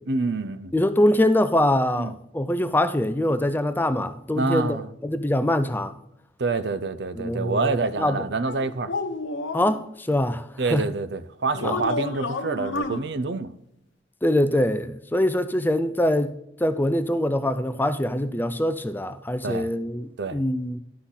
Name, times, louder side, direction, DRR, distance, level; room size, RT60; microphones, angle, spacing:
voice 1, 0.1-0.7 2.0-2.1 4.3-4.9 6.4-8.9 10.6-13.5 19.4-19.7 20.2-20.4, right 3 dB, 60° right, 0.6 m, -27 dB
voice 2, 0.7-4.8 5.0-5.9 7.2-8.2 9.5-10.9 11.6-11.8 14.2-16.3 16.6-20.8, left 1 dB, 10° left, 0.4 m, -23 dB
sound 1, 8.5-9.8 11.5-13.0, left 3 dB, 85° left, 1.0 m, -30 dB
11.5 x 6.1 x 4.0 m
head